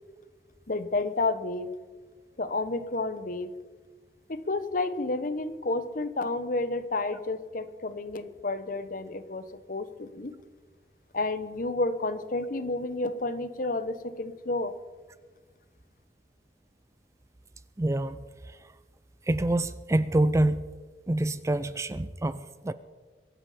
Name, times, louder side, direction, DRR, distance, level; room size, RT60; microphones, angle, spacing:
voice 1, 0.7-1.7 2.4-3.5 4.3-10.3 11.1-14.7, left 2 dB, 50° left, 13 dB, 0.9 m, -30 dB
voice 2, 17.8-18.2 19.3-20.6 21.1-22.7, right 1 dB, 15° right, 15 dB, 0.4 m, -26 dB
23.0 x 11.0 x 5.0 m, 1.4 s
head